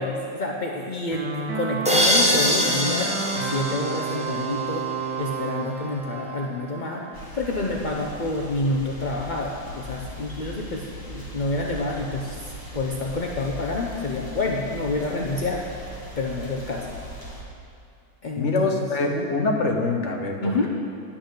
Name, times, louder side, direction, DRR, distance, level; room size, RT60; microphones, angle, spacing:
voice 1, 0.0-3.1 3.4-7.1 7.3-16.9 18.2-19.2 20.4-20.7, left 2 dB, 70° left, -1 dB, 0.4 m, -28 dB
sound 1, 1.1-7.2, right 4 dB, 75° right, 1.6 m, -31 dB
sound 2, 1.8-4.7, equal, 10° right, 0.3 m, -23 dB
sound 3, 7.1-17.4, equal, 15° left, 1.1 m, -39 dB
voice 2, 18.4-20.7, left 2 dB, 50° left, 3 dB, 1.0 m, -24 dB
10.0 x 6.1 x 6.5 m, 2.4 s
omnidirectional pair, 1.8 m